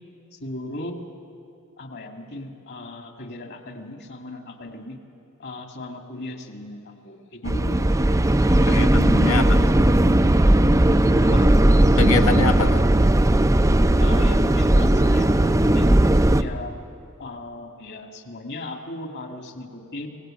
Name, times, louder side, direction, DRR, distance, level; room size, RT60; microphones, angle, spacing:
voice 1, 0.3-1.0 1.8-5.0 5.4-8.0 8.5-9.3 11.2-11.5 14.0-15.9 16.4-16.8 17.2-20.1, left 2 dB, 55° left, 4 dB, 2.2 m, -37 dB
sound 1, 7.5-16.4, right 1 dB, 15° right, 0.5 m, -17 dB
voice 2, 8.7-9.7 12.0-12.8, left 4 dB, 70° left, 6 dB, 1.4 m, -25 dB
25.0 x 17.5 x 8.9 m, 2.7 s
head